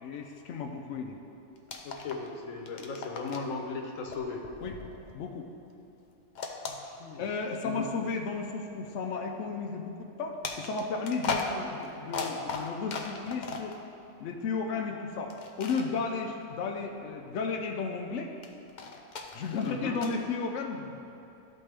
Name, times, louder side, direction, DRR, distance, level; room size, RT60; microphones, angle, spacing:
voice 1, 0.0-1.2 4.6-4.7 5.1-5.5 7.2-13.8 14.2-18.3 19.3-21.0, left 4 dB, 70° left, 2 dB, 0.9 m, -34 dB
sound 1, 1.7-2.3 2.6-3.5 4.1-5.5 6.4-7.4 8.1-8.2 10.4-13.8 15.3-15.9 18.4-20.2, left 4 dB, 55° left, 0.5 m, -37 dB
voice 2, 1.8-4.4 6.6-7.3 7.6-7.9 19.6-20.0, left 4 dB, 90° left, 1 dB, 1.2 m, -37 dB
12.5 x 4.3 x 3.3 m, 2.8 s
omnidirectional pair, 1.3 m